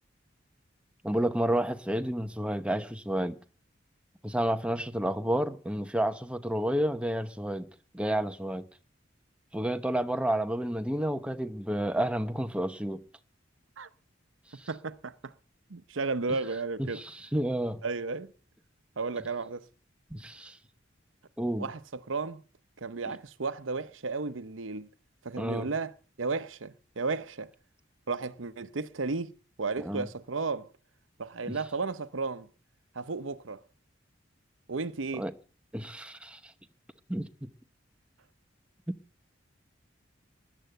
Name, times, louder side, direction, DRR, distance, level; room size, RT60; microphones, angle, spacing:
voice 1, 1.0-3.4 4.2-7.7 7.9-8.7 9.5-13.0 14.6-14.7 16.9-17.8 20.1-20.6 21.4-21.7 25.4-25.7 29.8-30.1 31.5-31.6 35.1-35.3 35.7-36.5 37.1-37.5, right 1 dB, 5° right, 0.9 m, -30 dB
voice 2, 14.7-15.3 15.7-17.0 17.8-18.3 19.0-19.6 21.6-22.4 22.8-24.9 25.2-27.5 28.1-29.3 29.6-30.7 31.2-32.5 32.9-33.6 34.7-35.3, right 4 dB, 85° right, 0.8 m, -33 dB
13.5 x 10.0 x 7.9 m
head